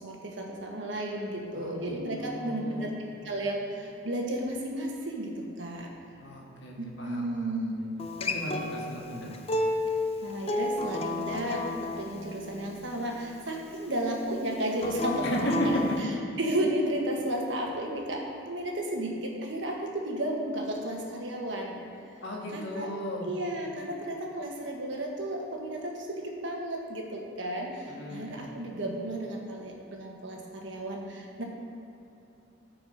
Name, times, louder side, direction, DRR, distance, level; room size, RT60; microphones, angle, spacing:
voice 1, 0.0-2.9 3.2-5.9 6.8-7.8 10.2-16.1 16.4-21.8 22.5-22.9 23.2-31.4, right 1 dB, 60° right, 0 dB, 1.4 m, -33 dB
voice 2, 1.5-2.9 6.2-7.9 8.2-9.3 15.2-15.7 22.2-23.3 27.9-28.3, equal, 60° left, -2 dB, 1.6 m, -36 dB
Acoustic guitar, 8.0-13.2 14.8-16.0, left 2 dB, 30° left, 0.5 m, -32 dB
12.5 x 4.9 x 5.0 m, 2.9 s
head